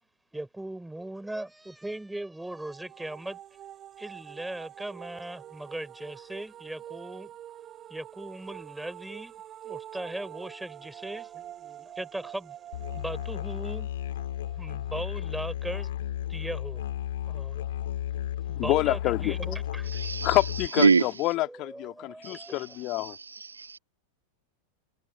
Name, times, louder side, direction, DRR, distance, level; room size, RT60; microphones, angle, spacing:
voice 1, 0.3-3.4 4.0-7.3 7.9-9.3 9.6-12.6 12.9-13.9 14.5-16.9 17.3-17.7 18.4-20.3 21.4-22.6, right 1 dB, 5° right, 5.2 m, -39 dB
sound 1, 2.4-15.3, right 11 dB, 30° right, 6.5 m, -46 dB
Musical instrument, 12.7-20.7, left 12 dB, 60° left, 2.8 m, -33 dB
voice 2, 18.6-19.4 20.2-23.2, left 19 dB, 40° left, 1.9 m, -27 dB
voice 3, 19.9-20.4 20.7-21.1 22.2-22.5 23.0-23.8, right 5 dB, 75° right, 1.4 m, -25 dB
figure-of-eight pair, 90°, 0 cm